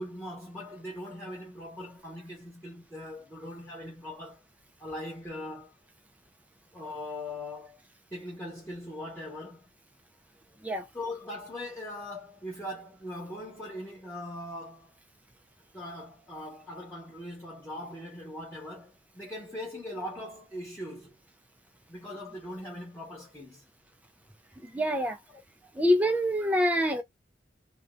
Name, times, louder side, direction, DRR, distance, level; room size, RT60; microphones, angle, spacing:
voice 1, 0.0-4.4 4.8-5.8 6.7-7.8 8.1-9.7 10.9-14.9 15.7-21.2 21.9-23.6 25.3-25.7, left 1 dB, 10° left, 1.0 m, -40 dB
voice 2, 24.7-25.2 25.8-27.0, equal, 10° right, 0.3 m, -25 dB
2.5 x 2.1 x 2.4 m
head